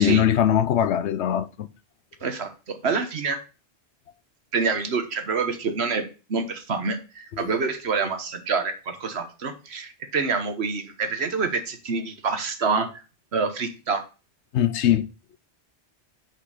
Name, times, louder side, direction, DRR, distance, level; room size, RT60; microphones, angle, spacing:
voice 1, 0.0-1.7 7.3-7.5 14.5-15.0, left 10 dB, 85° left, 0.9 m, -21 dB
voice 2, 2.2-3.4 4.5-12.9 13.3-14.0, right 4 dB, 70° right, 1.4 m, -27 dB
6.2 x 5.8 x 4.9 m
omnidirectional pair, 1.1 m